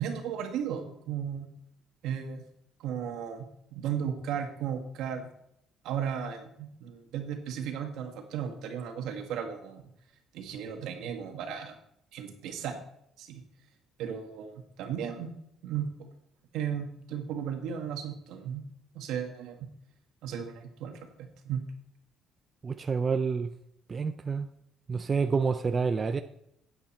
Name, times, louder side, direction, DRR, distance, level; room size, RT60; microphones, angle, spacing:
voice 1, 0.0-1.5 2.0-2.4 2.8-3.4 3.7-5.3 5.8-9.8 10.3-11.7 12.1-12.8 13.2-13.4 14.0-15.3 15.6-15.9 16.5-18.6 18.9-19.7 20.2-21.0 21.4-21.6, right 8 dB, 80° right, 1.6 m, -35 dB
voice 2, 22.6-23.5 23.9-24.5 24.9-26.2, right 5 dB, 30° right, 0.4 m, -28 dB
9.1 x 8.7 x 4.4 m
cardioid pair, 135°, 0 cm